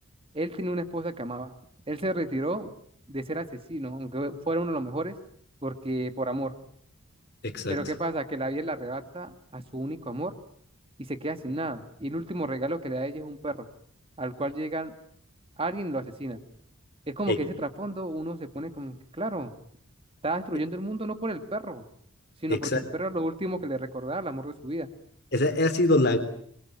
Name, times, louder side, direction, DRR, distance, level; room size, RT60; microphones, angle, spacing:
voice 1, 0.3-1.5 1.9-2.7 3.1-5.2 5.6-6.5 7.7-10.3 11.0-13.7 14.2-14.9 15.6-16.4 17.1-19.5 20.2-21.8 22.4-24.9, right 1 dB, 25° right, 9 dB, 2.0 m, -32 dB
voice 2, 7.4-7.8 17.3-17.4 22.5-22.8 25.3-26.2, left 2 dB, 50° left, 7 dB, 3.6 m, -23 dB
26.5 x 23.0 x 8.9 m, 0.65 s
head